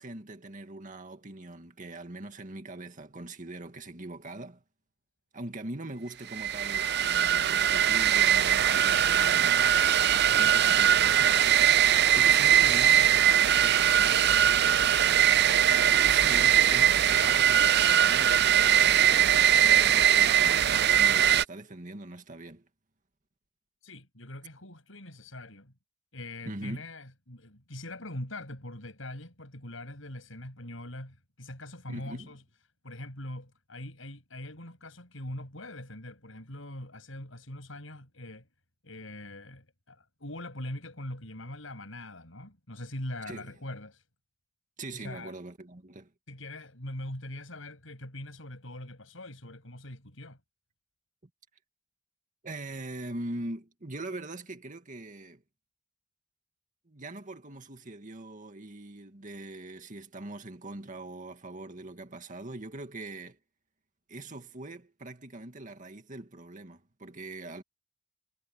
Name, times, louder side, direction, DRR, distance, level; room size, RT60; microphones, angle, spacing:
voice 1, 0.0-4.6 5.3-9.7 10.3-11.4 12.1-14.3 15.7-20.7 21.0-22.7 26.5-26.8 31.9-32.3 43.3-43.5 44.8-46.1 52.4-55.4 56.9-63.4 64.1-67.6, right 2 dB, 40° right, 2.1 m, -42 dB
sound 1, 6.3-21.4, right 10 dB, 55° right, 0.6 m, -21 dB
voice 2, 23.8-25.7 26.1-32.4 32.8-38.5 38.8-44.0 44.9-45.3 46.3-50.4, left 1 dB, 80° left, 7.3 m, -42 dB
head